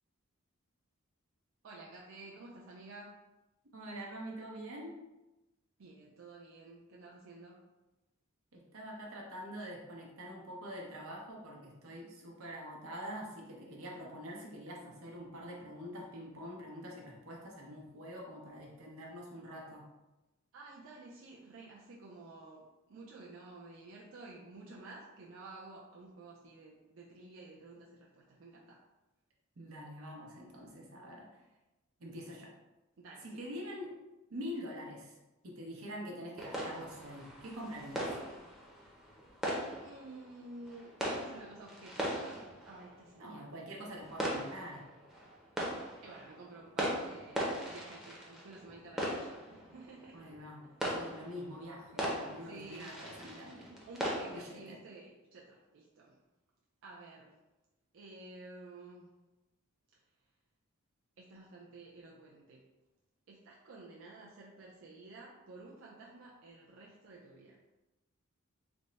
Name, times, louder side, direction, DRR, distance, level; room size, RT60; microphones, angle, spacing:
voice 1, 1.6-3.2 5.8-7.6 20.5-28.8 33.0-33.4 39.8-43.5 46.0-50.3 50.6-51.1 52.4-52.9 53.9-56.2 56.8-57.4 57.9-59.1 61.2-62.7 63.3-67.6, right 2 dB, 65° right, -3 dB, 0.5 m, -52 dB
voice 2, 3.7-5.0 8.5-19.8 29.6-31.4 32.0-32.5 33.2-33.9 34.3-35.1 35.4-38.1 43.2-44.8 50.1-50.7 50.9-53.8 54.3-54.8, equal, 90° right, -1 dB, 0.8 m, -45 dB
sound 1, 36.4-54.5, equal, ahead, 0.6 m, -40 dB
3.4 x 2.1 x 3.9 m, 1.0 s
head